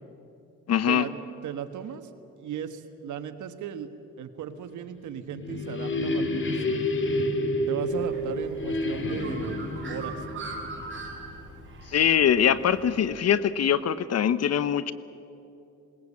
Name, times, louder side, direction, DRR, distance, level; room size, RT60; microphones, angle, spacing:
voice 1, 0.7-1.1 11.9-14.9, left 9 dB, 55° left, 15 dB, 0.9 m, -23 dB
voice 2, 1.4-2.1 2.4-3.9 4.2-6.9 7.7-10.2, right 9 dB, 75° right, 9 dB, 1.5 m, -36 dB
sound 1, 4.9-11.6, left 1 dB, 40° left, 2.5 m, -30 dB
Bird, 7.9-13.1, right 3 dB, 40° right, 5.4 m, -42 dB
21.0 x 20.0 x 8.5 m, 2.7 s
cardioid pair, 90°, 30 cm